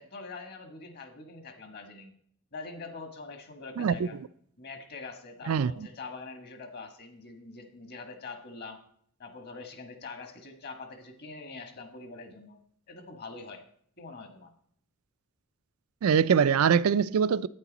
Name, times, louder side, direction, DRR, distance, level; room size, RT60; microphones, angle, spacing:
voice 1, 0.0-2.1 2.5-4.2 4.6-8.8 9.2-12.6 12.9-13.6 14.0-14.5, left 3 dB, 50° left, 1.6 m, -44 dB
voice 2, 3.8-4.1 5.5-5.9 16.0-17.5, right 7 dB, 80° right, 0.4 m, -23 dB
9.7 x 9.0 x 4.1 m
head